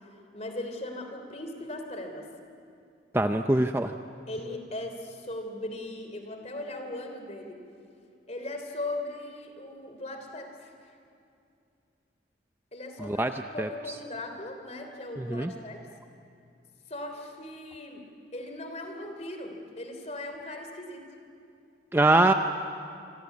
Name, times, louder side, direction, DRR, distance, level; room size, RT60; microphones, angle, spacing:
voice 1, 0.3-2.3 4.3-7.6 8.3-10.7 12.7-13.2 13.5-15.8 16.9-18.0 18.3-21.0, left 1 dB, 35° left, 5 dB, 3.2 m, -38 dB
voice 2, 3.1-3.9 13.0-13.3 13.6-13.7 15.2-15.5 21.9-22.3, right 2 dB, 10° right, 6 dB, 0.6 m, -23 dB
26.5 x 25.5 x 8.5 m, 2.5 s
head